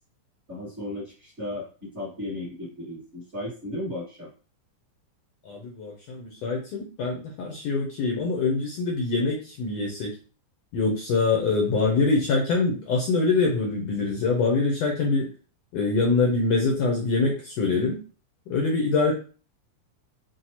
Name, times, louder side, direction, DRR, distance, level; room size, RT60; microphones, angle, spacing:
voice 1, 0.5-4.3, left 1 dB, 25° right, -7 dB, 1.8 m, -35 dB
voice 2, 5.5-10.1 10.7-15.2 15.7-18.0 18.5-19.1, left 3 dB, 70° left, 0 dB, 1.7 m, -24 dB
5.7 x 2.8 x 2.8 m, 0.36 s
omnidirectional pair, 3.5 m